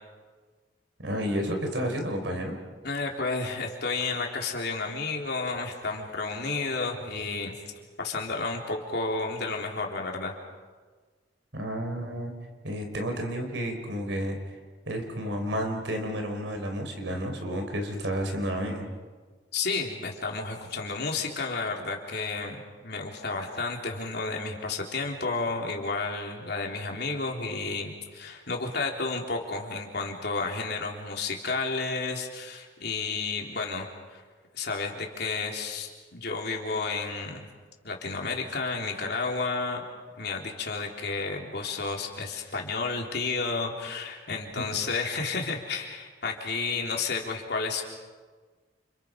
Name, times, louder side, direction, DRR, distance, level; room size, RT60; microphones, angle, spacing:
voice 1, 1.0-2.6 11.5-12.3 12.6-14.6 14.9-18.9, equal, 80° right, 4 dB, 4.6 m, -31 dB
voice 2, 2.8-7.6 8.0-10.3 19.5-34.2 34.5-37.5 37.8-39.8 40.1-47.8, left 3 dB, 60° left, 0 dB, 3.7 m, -31 dB
30.0 x 29.0 x 5.3 m, 1.4 s
head